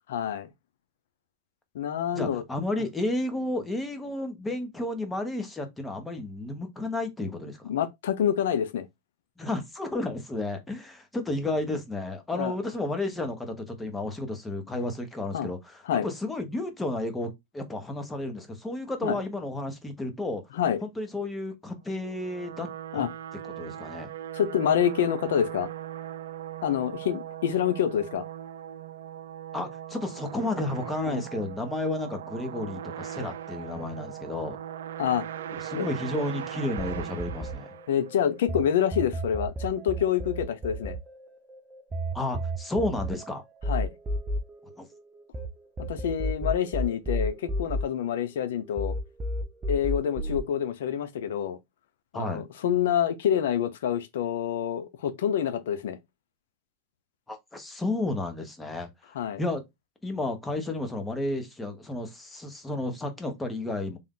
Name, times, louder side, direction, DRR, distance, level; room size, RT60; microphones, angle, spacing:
voice 1, 0.1-0.5 1.7-2.4 7.6-8.9 12.3-12.5 15.3-15.5 15.9-16.1 19.0-19.2 20.5-20.8 22.9-23.1 24.3-25.7 26.6-28.2 31.1-31.2 35.0-35.2 35.7-35.9 37.9-41.0 43.7-43.9 45.9-49.0 49.7-51.6 52.1-56.0 59.1-59.4, left 9 dB, 80° left, 0.6 m, -27 dB
voice 2, 2.1-7.7 9.4-20.4 20.8-22.7 22.9-23.0 23.6-24.1 29.5-34.6 35.5-37.7 42.1-43.4 44.8-44.9 52.1-52.4 57.3-58.9 59.4-59.6 60.0-64.0, left 2 dB, 10° left, 1.0 m, -32 dB
sound 1, 22.0-38.3, right 11 dB, 90° right, 0.4 m, -39 dB
sound 2, 36.8-38.6 38.9-45.5 45.8-48.5 48.8-50.4, equal, 15° right, 0.6 m, -32 dB
3.5 x 2.5 x 3.7 m
supercardioid pair, 135°, 0 cm